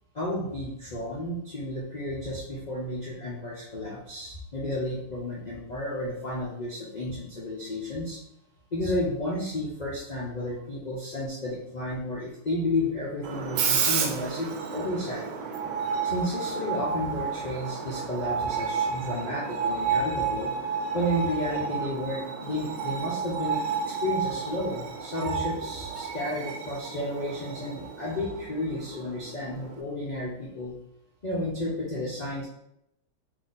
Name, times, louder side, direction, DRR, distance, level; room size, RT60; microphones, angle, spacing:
voice 1, 0.1-8.2 8.7-15.3 16.0-20.5 20.9-30.7 31.2-32.5, left 1 dB, 55° left, -5 dB, 0.4 m, -32 dB
Screech, 13.2-29.8, right 6 dB, 85° right, 1.3 m, -31 dB
3.9 x 2.8 x 3.9 m, 0.77 s
omnidirectional pair, 1.9 m